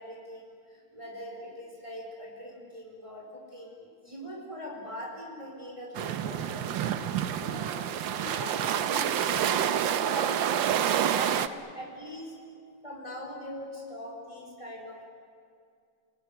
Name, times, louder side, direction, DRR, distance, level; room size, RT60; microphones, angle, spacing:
voice 1, 0.0-6.7 7.0-7.1 7.4-7.7 8.1-11.4 11.7-12.3 12.8-15.0, equal, 15° right, -2 dB, 4.7 m, -42 dB
sound 1, 5.9-11.5, right 9 dB, 70° right, 1.6 m, -28 dB
28.5 x 18.5 x 9.9 m, 2.3 s
omnidirectional pair, 2.3 m